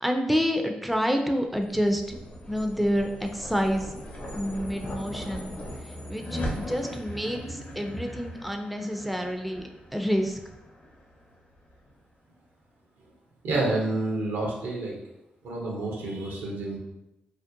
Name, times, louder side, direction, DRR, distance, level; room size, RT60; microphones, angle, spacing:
voice 1, 0.0-2.2 2.5-3.9 4.3-5.5 6.1-10.4, equal, ahead, 4 dB, 0.3 m, -28 dB
sound 1, 1.4-11.9, equal, 50° left, 0.7 m, -39 dB
voice 2, 13.4-15.0 15.4-16.8, right 2 dB, 85° right, -1 dB, 0.6 m, -29 dB
2.5 x 2.1 x 2.6 m, 0.92 s
supercardioid pair, 45°, 3 cm